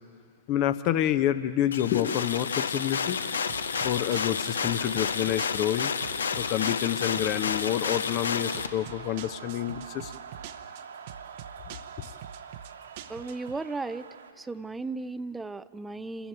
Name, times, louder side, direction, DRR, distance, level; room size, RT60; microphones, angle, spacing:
voice 1, 0.5-3.2 3.8-5.9 6.4-10.1 11.7-11.8, left 12 dB, 35° left, 13 dB, 0.8 m, -28 dB
sound 1, 1.7-8.7, left 6 dB, 65° left, 0.9 m, -30 dB
sound 2, 3.5-13.6, right 10 dB, 45° right, 0.8 m, -46 dB
sound 3, 4.9-14.3, right 7 dB, 60° right, 1.4 m, -47 dB
voice 2, 13.1-14.1 14.4-16.3, right 3 dB, 10° right, 15 dB, 0.5 m, -35 dB
27.0 x 14.0 x 8.9 m, 2.5 s
figure-of-eight pair, 110°, 0 cm